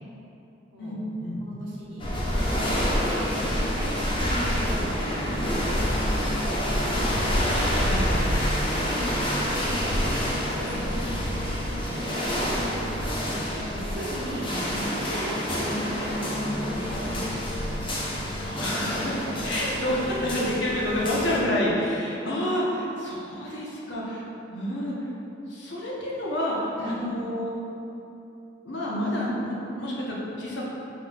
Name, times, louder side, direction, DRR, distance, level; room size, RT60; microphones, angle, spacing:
voice 1, 0.8-1.4 7.7-8.1 18.4-19.1 19.4-24.2 24.5-25.0 25.5-27.5 28.6-30.6, equal, 70° left, -5 dB, 0.9 m, -29 dB
voice 2, 1.4-5.6 5.9-7.2 8.5-10.9 11.9-12.5 12.8-17.4 23.4-23.6 26.8-27.1, equal, 85° right, -7 dB, 1.2 m, -37 dB
sound 1, 2.0-21.4, equal, 25° left, 0.5 m, -27 dB
5.7 x 3.8 x 2.3 m, 2.9 s
head